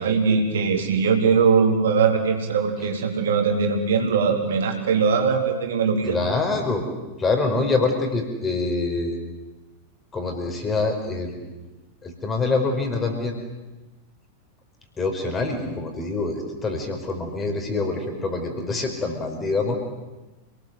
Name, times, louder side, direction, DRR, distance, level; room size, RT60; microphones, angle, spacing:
voice 1, 0.0-6.2, right 5 dB, 60° right, 3 dB, 3.5 m, -21 dB
voice 2, 6.1-6.8 7.2-9.2 10.1-11.5 12.0-13.4 15.0-19.8, left 3 dB, 20° left, 3 dB, 5.3 m, -25 dB
28.0 x 19.5 x 7.9 m, 1.1 s
figure-of-eight pair, 90°, 0 cm